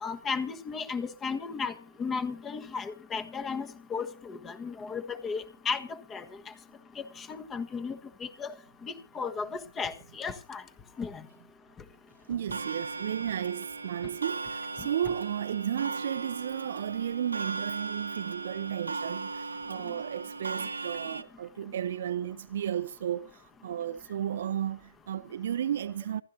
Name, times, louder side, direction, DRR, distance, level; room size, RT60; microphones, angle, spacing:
voice 1, 0.0-6.2 7.0-8.0 8.4-8.5 8.8-10.6 11.0-11.2, left 5 dB, 15° left, 1.4 m, -35 dB
voice 2, 12.3-23.3 23.6-26.2, right 10 dB, 45° right, 0.7 m, -33 dB
Clock, 12.5-21.2, right 3 dB, 75° right, 1.5 m, -37 dB
27.5 x 12.0 x 2.7 m
figure-of-eight pair, 130°, 0 cm